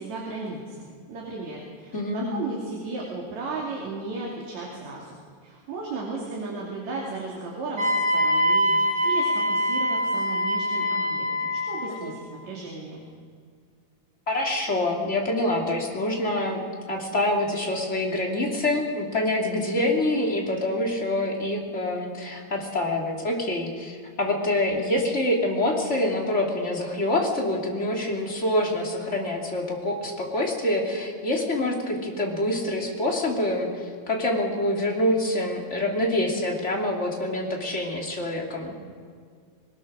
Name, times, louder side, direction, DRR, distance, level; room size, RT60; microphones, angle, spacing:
voice 1, 0.0-5.1 5.4-13.0, right 3 dB, 60° right, -3 dB, 4.0 m, -35 dB
voice 2, 1.9-2.3 12.0-12.1 14.3-16.6 16.9-38.7, left 1 dB, 20° left, 0 dB, 2.9 m, -26 dB
Wind instrument woodwind instrument, 7.8-11.9, equal, 35° right, 3.8 m, -24 dB
22.0 x 19.0 x 6.4 m, 2.1 s
omnidirectional pair, 3.6 m